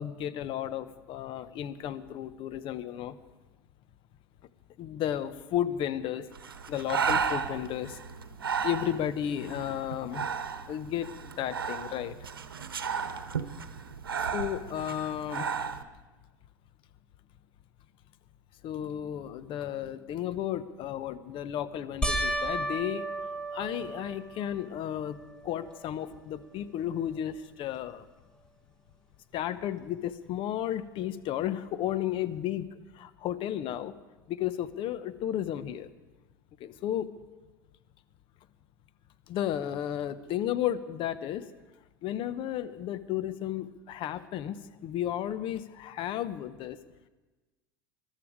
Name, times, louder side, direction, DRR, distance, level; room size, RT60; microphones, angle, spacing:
voice 1, 0.0-3.2 4.8-6.3 6.7-8.0 8.6-10.2 10.7-12.2 14.3-15.5 18.6-23.1 23.5-25.2 25.4-28.0 29.3-33.9 34.3-35.9 36.6-37.1 39.3-41.5 42.0-46.8, left 11 dB, 50° left, 13 dB, 1.0 m, -33 dB
Breathing, 6.3-15.8, right 6 dB, 85° right, 0.9 m, -34 dB
sound 1, 22.0-24.6 25.2-25.8 26.1-26.2 29.4-29.5, right 1 dB, 5° left, 2.0 m, -33 dB
21.5 x 12.5 x 5.0 m, 1.2 s
hypercardioid pair, 80°, 12 cm